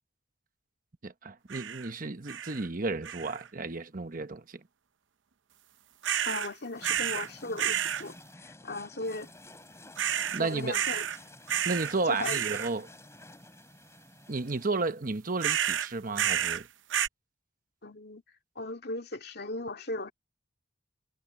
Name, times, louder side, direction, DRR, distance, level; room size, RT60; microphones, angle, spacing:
voice 1, 1.0-4.6 10.3-10.7 11.6-12.9 14.3-16.7, right 3 dB, 45° right, 1.1 m, -32 dB
sound 1, 1.5-1.9 2.3-2.7 3.0-3.5 6.0-6.5 6.8-7.3 7.6-8.0 10.0-10.4 10.7-11.2 11.5-12.0 12.2-12.7 15.4-16.6 16.9-17.1, right 9 dB, 75° right, 0.7 m, -30 dB
voice 2, 6.2-8.2 8.4-9.3 10.4-11.1 12.1-12.4 17.8-18.2 18.6-20.1, left 2 dB, 60° left, 2.2 m, -37 dB
sound 2, 6.7-14.7, left 2 dB, 15° left, 4.2 m, -52 dB
head